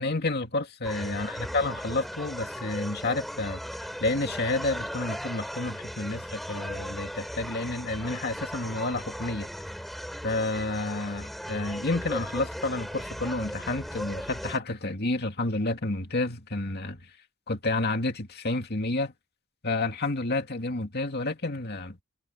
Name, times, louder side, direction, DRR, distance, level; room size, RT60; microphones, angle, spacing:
voice 1, 0.0-9.5 10.2-17.1 17.5-19.1 19.6-22.0, left 2 dB, 50° left, 2.5 m, -30 dB
sound 1, 0.8-14.6, equal, ahead, 6.7 m, -37 dB
head